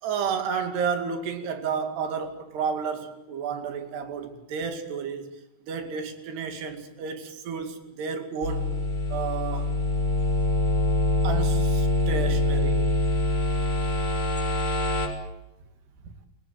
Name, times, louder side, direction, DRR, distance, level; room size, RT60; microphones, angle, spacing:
voice 1, 0.0-5.3 5.6-8.7 9.1-9.7 11.2-12.9, right 6 dB, 90° right, 4.5 m, -31 dB
sound 1, 8.4-15.1, left 2 dB, 20° left, 4.3 m, -24 dB
29.0 x 16.5 x 9.4 m
omnidirectional pair, 4.6 m